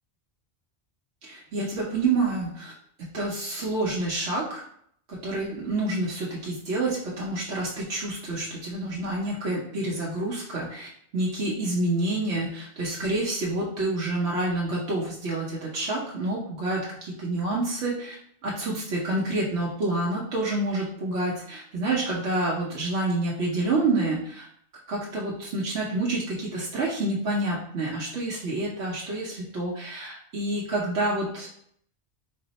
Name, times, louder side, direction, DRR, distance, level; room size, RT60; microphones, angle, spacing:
voice 1, 1.2-2.7 3.0-4.6 5.1-18.1 18.4-24.5 24.9-31.5, right 2 dB, 80° right, -5 dB, 1.0 m, -28 dB
4.1 x 2.0 x 3.9 m, 0.68 s
omnidirectional pair, 1.1 m